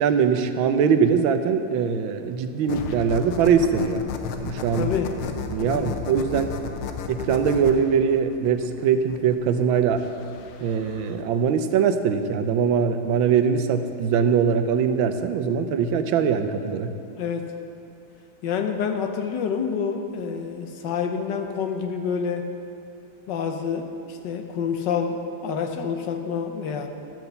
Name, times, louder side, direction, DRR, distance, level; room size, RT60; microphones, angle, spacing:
voice 1, 0.0-4.0 4.4-4.9 5.5-6.5 7.1-10.0 10.6-16.9, right 6 dB, 80° right, 9 dB, 1.4 m, -22 dB
sound 1, 2.7-11.2, left 6 dB, 85° left, 1.5 m, -34 dB
voice 2, 4.8-5.1 5.6-5.9 17.1-17.5 18.4-22.4 23.3-26.9, left 6 dB, 70° left, 6 dB, 1.3 m, -28 dB
12.0 x 6.1 x 6.7 m, 2.6 s
omnidirectional pair, 2.2 m